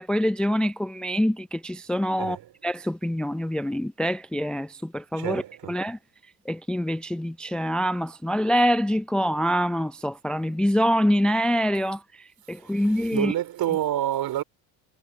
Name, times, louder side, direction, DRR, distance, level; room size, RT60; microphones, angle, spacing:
voice 1, 0.0-2.4 2.6-5.4 5.7-6.0 6.5-13.3, equal, ahead, 0.5 m, -25 dB
voice 2, 2.2-2.5 5.1-5.8 12.5-14.4, right 12 dB, 55° right, 3.4 m, -29 dB
hypercardioid pair, 70°, 43 cm